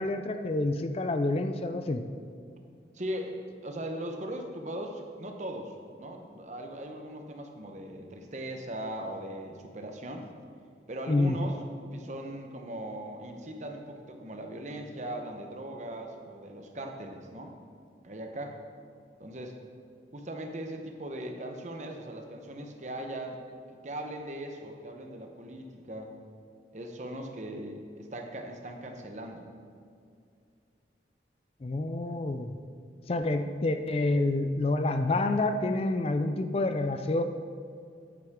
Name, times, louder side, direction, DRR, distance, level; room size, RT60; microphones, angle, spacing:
voice 1, 0.0-2.0 11.1-11.4 31.6-32.5 33.1-37.2, left 2 dB, 35° left, 8 dB, 0.4 m, -28 dB
voice 2, 2.9-10.3 10.9-11.6 11.9-17.5 18.0-18.6 19.2-19.6 20.1-23.4 23.7-26.1 26.7-29.5, right 1 dB, 40° right, 4 dB, 0.9 m, -39 dB
9.4 x 9.3 x 3.7 m, 2.3 s
head